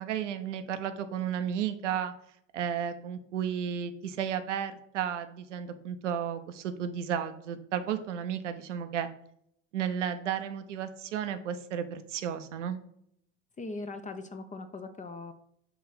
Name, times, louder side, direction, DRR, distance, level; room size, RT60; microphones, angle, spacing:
voice 1, 0.0-2.1 2.5-9.1 9.7-12.8, right 8 dB, 85° right, 9 dB, 0.6 m, -33 dB
voice 2, 13.6-15.3, left 3 dB, 20° left, 9 dB, 0.6 m, -40 dB
5.9 x 3.1 x 5.5 m, 0.72 s
hypercardioid pair, 65°, 35 cm